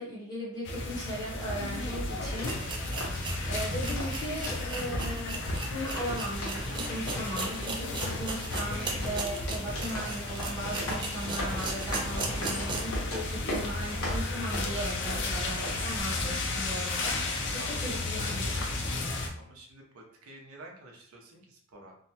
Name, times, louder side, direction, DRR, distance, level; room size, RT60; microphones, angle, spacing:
voice 1, 0.0-2.6 3.1-5.4 5.7-18.5, equal, 20° left, -7 dB, 0.7 m, -37 dB
sound 1, 0.6-19.3, left 2 dB, 55° left, 0.4 m, -34 dB
sound 2, 1.9-16.0, equal, 75° left, 0.9 m, -40 dB
sound 3, 1.9-2.0 2.4-13.0 13.4-13.5 14.0-14.1, right 3 dB, 20° right, 0.3 m, -38 dB
voice 2, 17.2-17.8 19.3-22.0, right 2 dB, 70° right, 0 dB, 0.6 m, -50 dB
2.7 x 2.1 x 2.7 m, 0.62 s
head